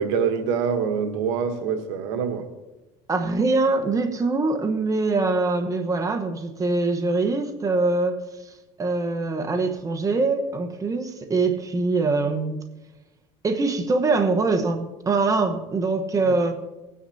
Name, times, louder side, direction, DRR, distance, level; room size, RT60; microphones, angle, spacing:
voice 1, 0.0-2.5, right 6 dB, 85° right, 1.2 m, -25 dB
voice 2, 3.1-8.2 8.4-12.6 13.4-16.5, right 3 dB, 25° right, 1.2 m, -23 dB
19.5 x 9.7 x 2.8 m
supercardioid pair, 100°, 15 cm